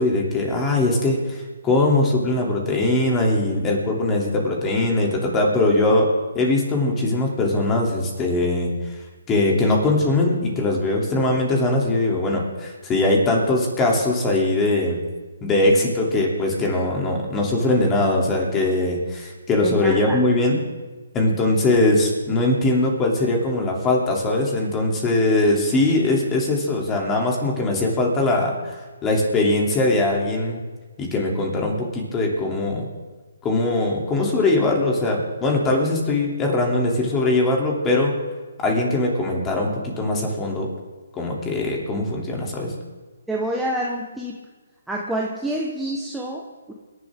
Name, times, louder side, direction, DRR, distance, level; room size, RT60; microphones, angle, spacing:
voice 1, 0.0-6.1 6.3-8.7 9.3-15.0 15.4-20.6 21.1-28.8 29.0-30.6 31.0-32.9 33.4-38.1 38.6-40.7 41.1-42.7, left 2 dB, 15° left, 0 dB, 3.0 m, -21 dB
voice 2, 19.6-20.2 43.3-44.4 44.9-46.7, right 1 dB, 5° right, -3 dB, 1.2 m, -27 dB
25.5 x 11.0 x 3.7 m, 1.3 s
hypercardioid pair, 155°, 0 cm